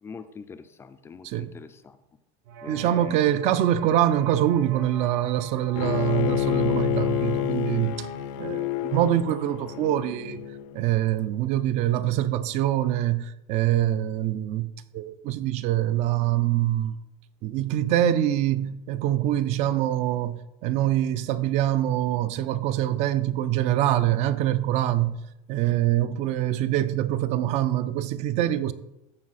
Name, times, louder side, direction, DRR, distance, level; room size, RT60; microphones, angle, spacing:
voice 1, 0.0-2.0 2.6-3.2, left 5 dB, 15° left, 0.4 m, -43 dB
sound 1, 2.4-7.5, right 4 dB, 65° right, 1.1 m, -44 dB
voice 2, 2.7-8.1 8.4-10.4 10.7-17.0 17.4-25.2 25.5-28.7, right 12 dB, 45° right, 0.5 m, -24 dB
Bowed string instrument, 5.7-10.8, left 12 dB, 75° left, 0.7 m, -28 dB
13.5 x 4.7 x 4.1 m
cardioid pair, 165°, 17 cm